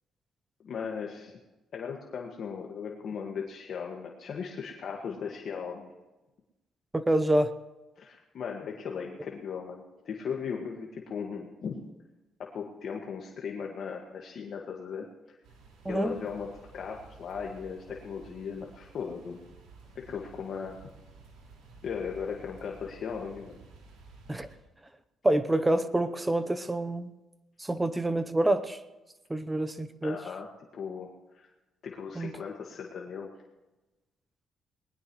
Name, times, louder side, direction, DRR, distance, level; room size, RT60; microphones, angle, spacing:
voice 1, 0.6-1.4 1.7-5.9 8.0-11.8 12.4-15.4 15.9-19.4 20.0-20.8 21.8-23.6 30.0-30.5 30.7-31.5 31.8-33.3, left 6 dB, 60° left, 0 dB, 1.8 m, -37 dB
voice 2, 6.9-7.5 15.8-16.1 24.3-24.5 25.2-27.1 27.6-28.8 29.3-30.2 32.1-32.3, right 1 dB, 15° right, 12 dB, 0.9 m, -27 dB
sound 1, 15.4-24.6, right 3 dB, 90° right, 4.9 m, -53 dB
20.5 x 19.5 x 3.2 m, 1.1 s
cardioid pair, 90°, 0 cm